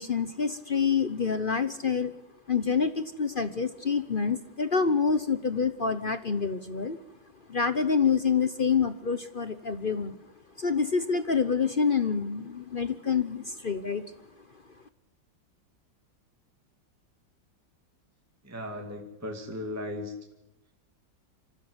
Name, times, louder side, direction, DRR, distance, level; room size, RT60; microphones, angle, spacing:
voice 1, 0.0-2.1 2.5-7.0 7.5-10.2 10.6-14.0, left 5 dB, 45° left, 12 dB, 0.7 m, -27 dB
voice 2, 18.4-20.1, left 1 dB, 10° right, 2 dB, 2.3 m, -36 dB
26.0 x 15.5 x 8.0 m, 0.94 s
omnidirectional pair, 2.1 m